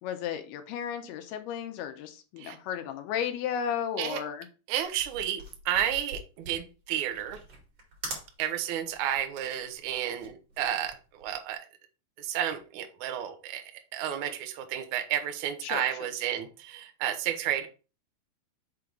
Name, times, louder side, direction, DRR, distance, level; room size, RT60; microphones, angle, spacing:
voice 1, 0.0-4.5 15.6-16.1, left 8 dB, 85° left, 2.9 m, -34 dB
voice 2, 4.7-7.4 8.4-11.7 12.2-13.6 13.9-17.7, right 11 dB, 70° right, 1.9 m, -31 dB
sound 1, 4.8-11.5, right 2 dB, 45° right, 3.4 m, -44 dB
6.9 x 3.9 x 4.6 m
omnidirectional pair, 4.4 m